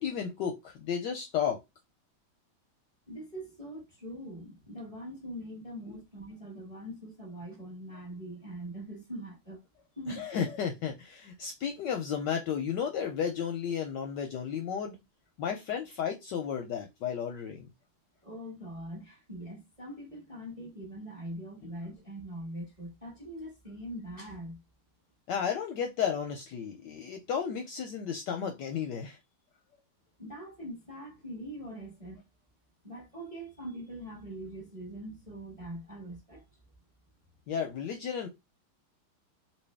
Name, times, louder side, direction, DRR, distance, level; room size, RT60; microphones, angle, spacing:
voice 1, 0.0-1.6 10.2-15.0 15.4-17.7 25.3-29.2 37.5-38.3, left 7 dB, 70° left, 1.1 m, -33 dB
voice 2, 3.1-9.6 10.0-10.3 18.2-24.6 30.2-32.2 32.8-36.4, right 1 dB, 20° right, 0.9 m, -42 dB
3.0 x 2.8 x 3.3 m
omnidirectional pair, 2.3 m